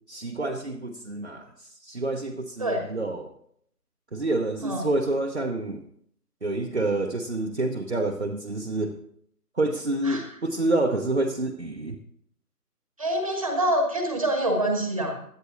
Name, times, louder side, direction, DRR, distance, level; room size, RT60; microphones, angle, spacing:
voice 1, 0.1-3.3 4.1-5.8 6.4-9.0 9.5-12.0, right 2 dB, 45° right, 1 dB, 0.9 m, -28 dB
voice 2, 13.0-15.2, right 1 dB, 20° right, 3 dB, 1.4 m, -26 dB
16.5 x 11.5 x 3.0 m, 0.67 s
figure-of-eight pair, 165°, 48 cm